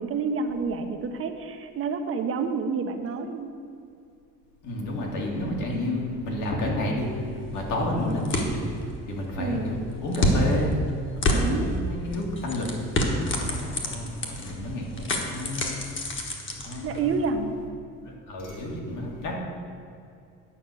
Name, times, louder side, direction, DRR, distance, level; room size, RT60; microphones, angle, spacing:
voice 1, 0.0-3.5 9.4-9.7 11.3-11.8 16.8-17.6, right 4 dB, 45° right, 6 dB, 0.8 m, -29 dB
voice 2, 4.6-7.1 7.5-8.6 9.1-10.8 11.2-12.8 13.0-15.8 16.6-17.4 18.3-19.4, left 1 dB, 70° left, -1 dB, 2.3 m, -30 dB
sound 1, 7.0-17.3, left 1 dB, 35° left, 1.4 m, -30 dB
9.9 x 5.7 x 8.0 m, 2.5 s
cardioid pair, 170°, 32 cm